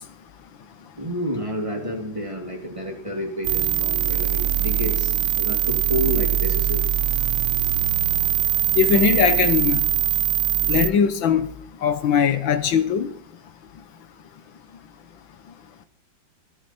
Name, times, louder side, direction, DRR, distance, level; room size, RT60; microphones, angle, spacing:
voice 1, 1.0-6.9, equal, 15° right, 2.6 m, -29 dB
sound 1, 3.4-10.9, right 11 dB, 80° right, 1.6 m, -22 dB
voice 2, 8.8-9.8 10.7-11.5 11.8-13.1, left 7 dB, 75° left, 1.7 m, -20 dB
16.0 x 13.5 x 4.3 m
omnidirectional pair, 2.2 m